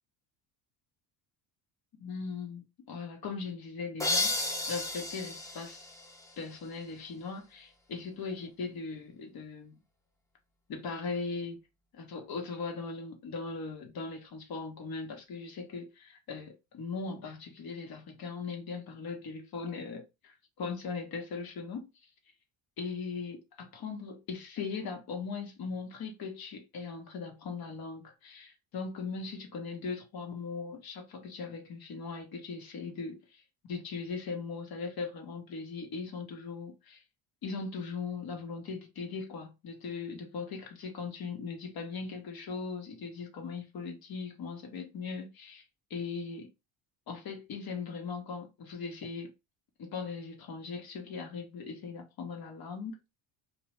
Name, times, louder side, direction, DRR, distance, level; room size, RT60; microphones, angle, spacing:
voice 1, 2.0-5.8 6.4-9.8 10.7-11.6 11.9-21.9 22.8-33.4 33.7-37.0 37.4-45.6 45.9-46.5 47.1-49.3 49.8-53.0, left 4 dB, 45° left, 1.0 m, -39 dB
sound 1, 4.0-6.7, left 2 dB, 5° left, 0.6 m, -33 dB
2.5 x 2.0 x 3.1 m
supercardioid pair, 80°, 49 cm